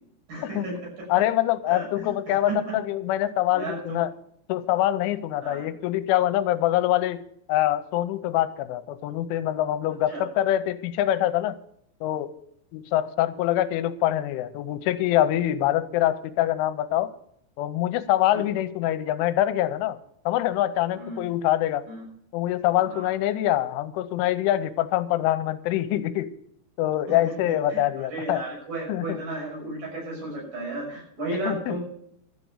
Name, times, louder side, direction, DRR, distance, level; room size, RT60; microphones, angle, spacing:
voice 1, 0.3-1.2 1.7-2.8 3.5-4.0 5.4-5.6 10.1-10.3 18.3-18.4 21.0-21.2 21.9-22.0 22.8-23.1 27.1-31.8, right 2 dB, 45° right, -2 dB, 7.2 m, -34 dB
voice 2, 1.1-4.1 4.5-7.2 7.5-11.6 12.0-12.3 12.7-17.1 17.6-20.0 20.3-21.8 22.3-26.3 26.8-28.4 28.9-29.2 31.5-31.8, left 13 dB, 85° left, 11 dB, 3.2 m, -24 dB
13.0 x 8.3 x 7.2 m, 0.70 s
omnidirectional pair, 5.5 m